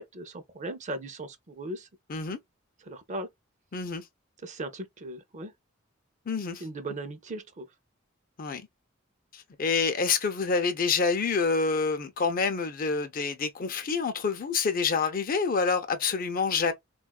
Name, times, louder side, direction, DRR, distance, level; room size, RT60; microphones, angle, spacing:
voice 1, 0.0-1.9 2.9-3.3 4.4-5.5 6.6-7.7, right 1 dB, 35° right, 0.5 m, -38 dB
voice 2, 3.7-4.0 6.3-6.6 8.4-8.7 9.3-16.7, left 5 dB, 45° left, 0.5 m, -27 dB
3.4 x 2.3 x 2.3 m
head